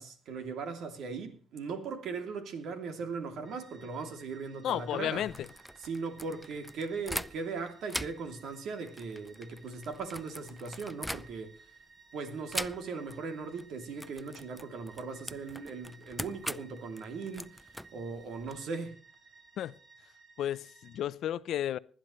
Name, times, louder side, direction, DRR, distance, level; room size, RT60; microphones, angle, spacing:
voice 1, 0.0-5.3 5.8-11.5 12.1-18.9, right 4 dB, 75° right, 2.8 m, -39 dB
sound 1, 3.4-21.0, right 5 dB, 35° right, 4.1 m, -58 dB
voice 2, 4.6-5.5 19.6-19.8 20.4-21.8, left 11 dB, 75° left, 0.6 m, -33 dB
Deadbolt and Doorknob lock, 5.1-7.6 7.9-11.7 12.5-13.2 13.4-13.7 14.0-18.6, equal, ahead, 0.5 m, -42 dB
20.0 x 10.5 x 3.1 m
cardioid pair, 90°, 0 cm